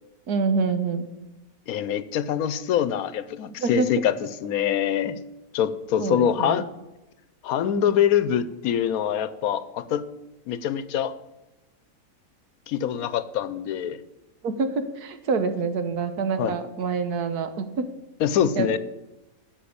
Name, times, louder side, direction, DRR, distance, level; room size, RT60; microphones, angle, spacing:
voice 1, 0.3-1.1 3.4-3.9 6.0-6.6 14.4-17.9 18.6-18.8, right 4 dB, 85° right, 9 dB, 1.6 m, -26 dB
voice 2, 1.7-5.2 5.5-6.6 7.4-10.0 10.5-11.1 12.7-14.0 16.4-16.6 18.2-18.8, left 9 dB, 75° left, 15 dB, 1.1 m, -24 dB
13.5 x 5.4 x 8.6 m, 1.0 s
omnidirectional pair, 1.6 m